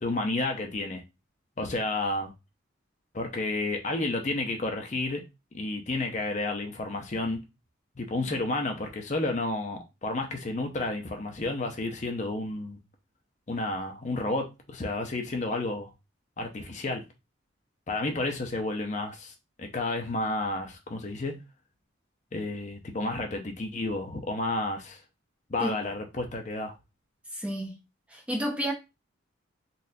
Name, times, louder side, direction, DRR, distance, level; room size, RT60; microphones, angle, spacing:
voice 1, 0.0-1.0 1.6-2.3 3.1-5.2 5.5-7.4 8.0-12.8 13.5-15.9 16.4-17.0 17.9-19.3 19.6-21.4 22.3-25.0 25.5-26.7, left 2 dB, 35° left, 0.6 m, -31 dB
voice 2, 27.3-27.7 28.1-28.7, equal, 5° right, 0.5 m, -30 dB
4.0 x 2.3 x 2.7 m
head